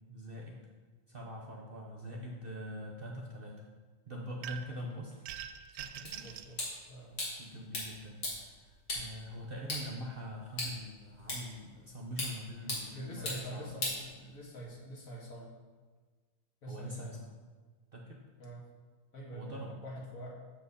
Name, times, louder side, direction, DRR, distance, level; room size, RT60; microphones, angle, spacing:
voice 1, 0.1-0.6 1.1-3.6 4.1-5.1 5.7-6.3 7.4-8.2 8.5-13.8 16.6-17.3 17.9-18.2 19.3-19.8, equal, 45° right, -1 dB, 0.8 m, -43 dB
sound 1, 4.4-4.8 5.3-6.5, right 10 dB, 75° right, 1.0 m, -43 dB
voice 2, 4.6-5.0 6.2-6.6 6.9-7.2 12.6-15.5 16.6-17.2 18.4-18.6 19.1-20.3, equal, 60° left, -3 dB, 2.1 m, -46 dB
sound 2, 6.1-14.7, left 1 dB, 75° left, 2.6 m, -41 dB
7.4 x 6.8 x 4.2 m, 1.4 s
omnidirectional pair, 1.7 m